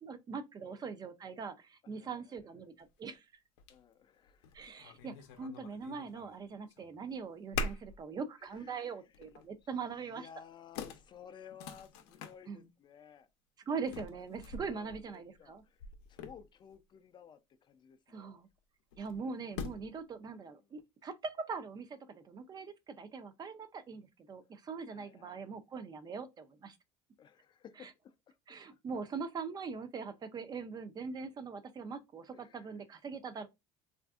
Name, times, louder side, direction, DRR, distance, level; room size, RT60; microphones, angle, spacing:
voice 1, 0.0-3.3 4.5-10.3 12.5-12.7 13.7-15.6 18.1-18.5 19.0-26.8 27.8-27.9 28.5-33.5, right 5 dB, 30° right, 0.4 m, -42 dB
voice 2, 1.9-2.4 3.7-4.6 8.4-9.0 9.7-13.3 14.1-14.2 14.7-18.3 20.4-20.7 24.9-25.4 27.2-28.8 32.3-32.7, left 8 dB, 35° left, 0.3 m, -56 dB
sound 1, 2.8-2.9 3.6-3.8 4.2-6.4 6.7-7.1 7.5-8.0 8.5-8.6 9.1-9.5 10.3-10.4 10.8-12.4 13.8-16.7 18.9-20.0, left 4 dB, 85° left, 0.5 m, -44 dB
3.3 x 2.5 x 2.3 m
supercardioid pair, 110°, 14 cm